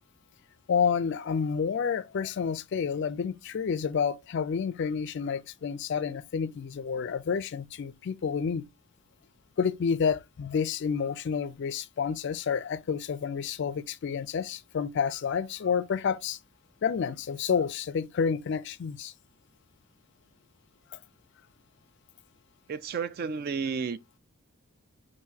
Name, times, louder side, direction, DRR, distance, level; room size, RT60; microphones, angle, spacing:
voice 1, 0.7-8.7 9.6-16.4 16.8-19.1, left 6 dB, 50° left, 0.3 m, -29 dB
voice 2, 22.7-24.0, right 5 dB, 45° right, 0.3 m, -32 dB
5.6 x 2.6 x 2.7 m
head